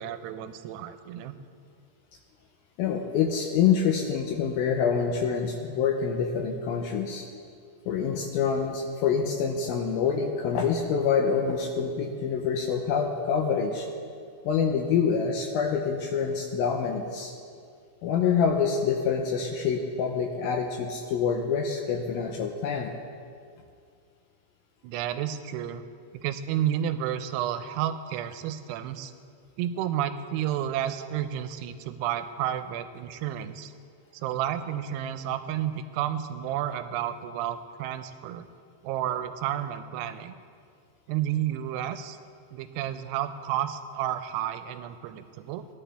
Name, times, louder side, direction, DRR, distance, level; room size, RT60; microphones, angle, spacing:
voice 1, 0.0-1.4 24.8-25.8 26.1-29.1 29.6-33.7 34.1-38.5 38.8-40.3 41.1-42.2 42.5-45.7, right 11 dB, 85° right, 10 dB, 2.6 m, -31 dB
voice 2, 2.8-7.3 7.9-13.9 14.5-17.3 18.0-22.9, left 6 dB, 80° left, 3 dB, 2.3 m, -26 dB
16.5 x 11.5 x 3.3 m, 2.3 s
omnidirectional pair, 4.7 m